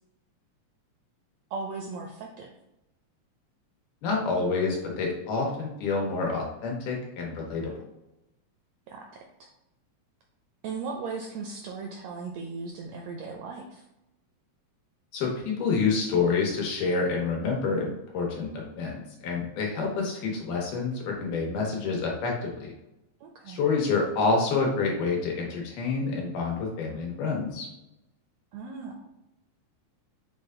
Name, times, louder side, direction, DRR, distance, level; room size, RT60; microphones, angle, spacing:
voice 1, 1.5-2.5 8.9-9.2 10.6-13.8 23.2-23.6 28.5-28.9, right 4 dB, 80° right, 2 dB, 1.5 m, -37 dB
voice 2, 4.0-7.7 15.1-22.7 23.5-27.7, left 4 dB, 90° left, -1 dB, 2.6 m, -28 dB
6.2 x 2.2 x 3.7 m, 0.91 s
omnidirectional pair, 3.5 m